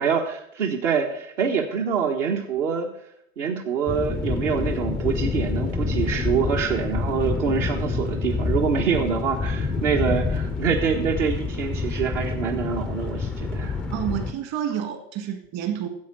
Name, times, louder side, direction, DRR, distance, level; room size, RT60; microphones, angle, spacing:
voice 1, 0.0-2.9 3.4-13.7, right 6 dB, 70° right, 2 dB, 1.6 m, -25 dB
sound 1, 3.9-14.3, left 4 dB, 5° left, 0.3 m, -27 dB
voice 2, 13.9-15.9, right 10 dB, 45° right, 7 dB, 2.0 m, -29 dB
10.5 x 7.8 x 6.2 m, 0.73 s
hypercardioid pair, 110°, 39 cm